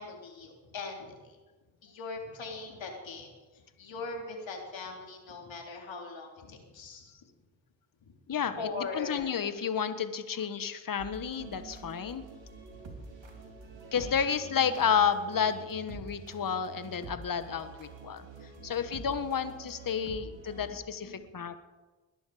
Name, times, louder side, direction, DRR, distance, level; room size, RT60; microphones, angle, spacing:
voice 1, 0.0-1.4 1.8-7.1 8.0-8.1 8.6-9.3 12.7-14.1 18.6-18.7, left 3 dB, 65° left, 1 dB, 3.6 m, -41 dB
voice 2, 8.9-12.2 13.9-18.2 18.6-21.5, left 7 dB, 45° left, 11 dB, 1.3 m, -31 dB
sound 1, 11.0-20.8, right 3 dB, 65° right, 3.1 m, -47 dB
21.0 x 11.5 x 5.0 m, 1.2 s
hypercardioid pair, 40°, 48 cm